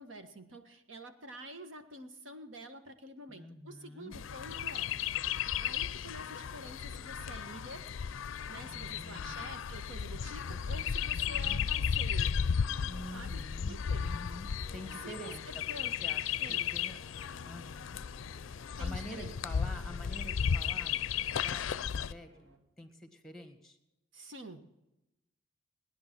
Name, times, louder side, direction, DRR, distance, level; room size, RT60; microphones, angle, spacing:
voice 1, 0.0-5.2 5.6-7.8 8.5-12.3 13.1-14.1 15.0-15.9 16.4-16.7 18.8-19.3 24.1-24.7, right 1 dB, 75° right, 7 dB, 1.5 m, -48 dB
voice 2, 3.3-4.2 8.7-9.5 10.1-11.6 12.8-15.6 16.0-17.0 17.4-18.0 18.8-22.5 22.8-23.8, left 1 dB, ahead, 5 dB, 1.7 m, -48 dB
Chirp tweet, 4.1-22.1, left 7 dB, 80° left, 0.4 m, -35 dB
sound 1, 14.6-22.6, right 1 dB, 55° right, 2.4 m, -58 dB
19.0 x 10.5 x 6.1 m, 0.93 s
head